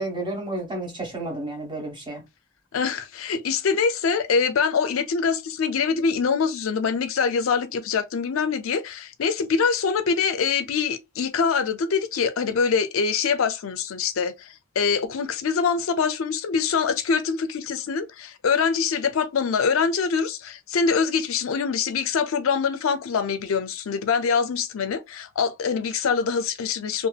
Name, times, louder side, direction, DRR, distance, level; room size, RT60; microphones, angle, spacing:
voice 1, 0.0-2.2, right 2 dB, 25° right, 1.1 m, -31 dB
voice 2, 2.7-27.1, left 5 dB, 80° left, 0.4 m, -24 dB
2.7 x 2.5 x 2.3 m
head